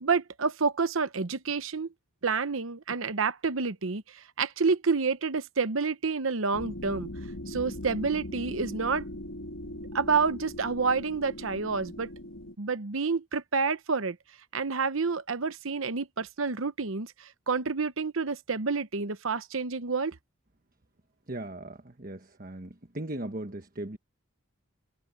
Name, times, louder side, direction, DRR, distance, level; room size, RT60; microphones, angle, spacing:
voice 1, 0.0-1.9 2.2-7.1 7.5-9.1 9.9-12.1 12.6-14.2 14.5-20.2, right 4 dB, 75° right, 0.9 m, -29 dB
sound 1, 6.5-12.5, left 1 dB, 70° left, 1.5 m, -40 dB
voice 2, 21.3-22.7 22.9-24.0, right 1 dB, 40° right, 1.3 m, -38 dB
head